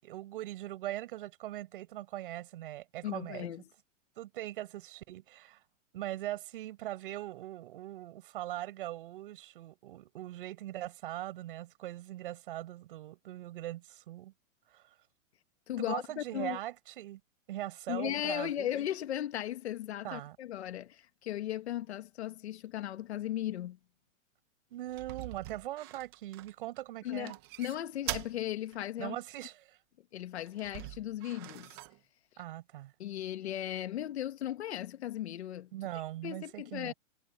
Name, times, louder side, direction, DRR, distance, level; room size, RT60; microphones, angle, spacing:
voice 1, 0.0-3.5 4.2-5.6 5.9-14.3 14.7-14.9 15.8-17.2 17.5-18.7 20.0-20.4 24.7-27.4 29.0-29.8 32.4-32.9 35.7-36.9, right 14 dB, 40° right, 6.3 m, -41 dB
voice 2, 3.0-3.6 15.7-16.6 17.9-23.8 27.0-29.2 30.1-31.7 33.0-35.7 36.2-36.9, left 12 dB, 55° left, 2.0 m, -37 dB
sound 1, 24.9-26.8 27.2-28.4 28.7-28.8 30.5-32.0, right 16 dB, 20° right, 1.0 m, -42 dB
supercardioid pair, 180°, 39 cm